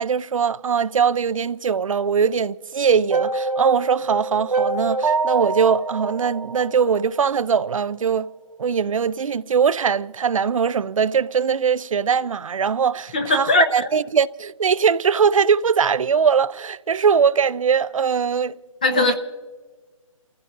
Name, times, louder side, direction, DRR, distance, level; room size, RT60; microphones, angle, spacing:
voice 1, 0.0-8.3 8.6-18.5 18.9-19.1, right 6 dB, 65° right, 0.5 m, -21 dB
sound 1, 3.1-7.3, right 3 dB, 90° right, 1.4 m, -25 dB
voice 2, 13.1-13.9 18.8-19.1, left 3 dB, 15° left, 0.5 m, -19 dB
29.0 x 15.0 x 2.6 m
hypercardioid pair, 175°, 18 cm